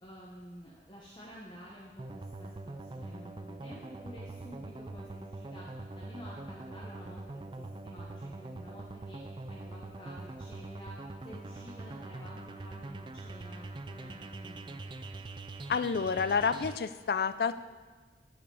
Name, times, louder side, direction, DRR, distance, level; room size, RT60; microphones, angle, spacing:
voice 1, 0.0-11.0 11.2-14.8, equal, 25° left, -5 dB, 1.0 m, -50 dB
sound 1, 2.0-16.8, right 2 dB, 25° right, 0.4 m, -43 dB
voice 2, 15.7-17.6, left 5 dB, 55° left, 13 dB, 0.4 m, -29 dB
14.5 x 4.9 x 4.8 m, 1.3 s
head